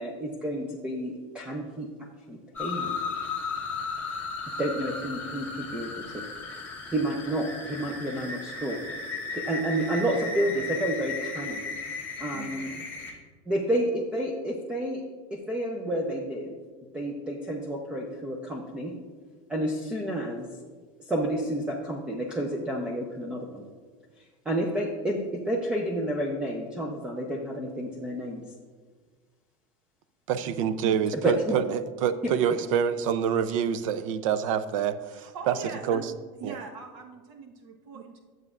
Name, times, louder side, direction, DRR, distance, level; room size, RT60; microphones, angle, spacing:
voice 1, 0.0-1.9 2.3-3.0 4.6-6.2 6.9-8.8 9.3-11.6 12.2-12.7 13.5-15.0 15.3-16.5 16.9-18.9 19.5-20.5 21.1-23.6 24.2-28.4 31.1-31.6, right 1 dB, 5° right, 0 dB, 0.4 m, -30 dB
sound 1, 2.6-13.1, left 4 dB, 10° left, 1.1 m, -35 dB
voice 2, 12.3-12.8 35.1-36.1 36.4-38.2, right 4 dB, 65° right, 3 dB, 1.1 m, -42 dB
voice 3, 30.3-35.6 35.9-36.0 36.4-36.5, right 8 dB, 80° right, 13 dB, 0.5 m, -26 dB
10.5 x 7.8 x 2.4 m, 1.4 s
supercardioid pair, 175°, 17 cm